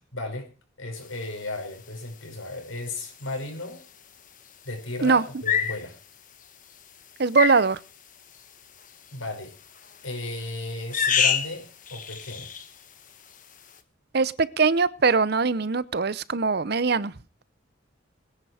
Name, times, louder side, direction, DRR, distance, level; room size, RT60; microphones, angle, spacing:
voice 1, 0.1-0.5 0.8-3.8 4.6-6.0 9.1-9.5 10.0-12.5, left 2 dB, 90° left, 3 dB, 5.8 m, -34 dB
sound 1, 3.2-3.4 5.4-5.8 7.4-7.7 9.8-10.1 10.9-11.6 11.9-12.7, left 7 dB, 40° left, 1.4 m, -25 dB
voice 2, 7.2-7.8 14.1-17.1, right 4 dB, 50° right, 18 dB, 0.7 m, -22 dB
21.0 x 10.5 x 4.9 m, 0.36 s
head